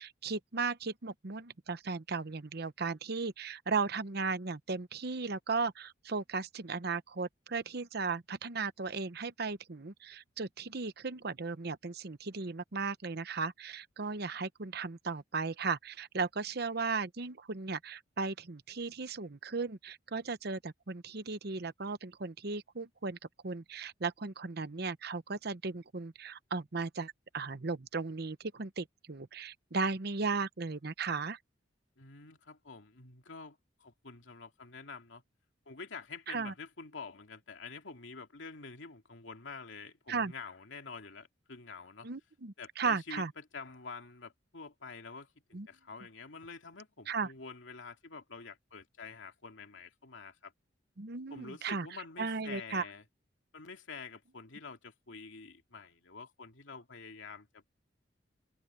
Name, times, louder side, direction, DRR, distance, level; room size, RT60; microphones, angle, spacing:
voice 1, 0.0-23.2 23.4-31.4 36.3-36.5 40.1-40.3 42.0-43.3 45.5-45.7 47.1-47.3 51.0-51.9 52.2-52.9, right 4 dB, 55° right, 0.9 m, -36 dB
voice 2, 32.0-35.2 35.7-42.1 42.6-50.5 51.3-53.0 53.5-57.6, left 4 dB, 85° left, 2.6 m, -48 dB
head